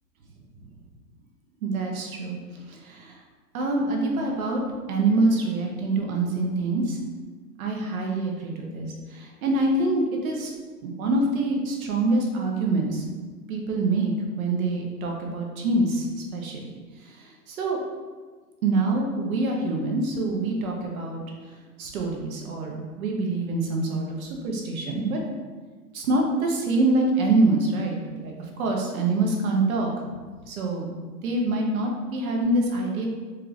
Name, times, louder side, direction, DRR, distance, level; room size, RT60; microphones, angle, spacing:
voice 1, 1.6-2.4 2.7-3.2 3.5-4.6 4.9-7.0 7.6-10.5 10.8-13.1 13.5-16.1 16.3-16.8 17.0-17.8 18.6-21.2 21.8-25.2 25.9-29.9 30.5-30.9 31.2-33.1, right 2 dB, 55° right, 1 dB, 0.9 m, -25 dB
4.5 x 2.4 x 3.2 m, 1.4 s
hypercardioid pair, 150°, 49 cm